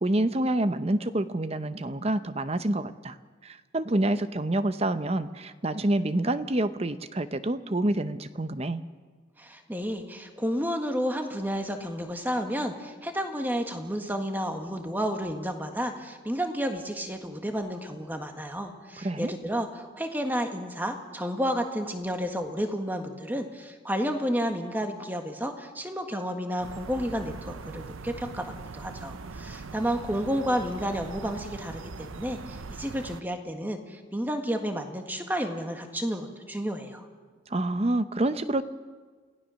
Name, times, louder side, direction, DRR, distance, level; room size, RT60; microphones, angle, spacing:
voice 1, 0.0-3.2 3.4-8.8 19.0-19.3 37.5-38.6, right 1 dB, 30° right, 12 dB, 0.7 m, -27 dB
voice 2, 9.4-37.1, equal, 10° right, 5 dB, 1.6 m, -31 dB
sound 1, 26.6-33.2, right 4 dB, 85° right, 0.7 m, -41 dB
28.5 x 17.0 x 6.4 m, 1.5 s
head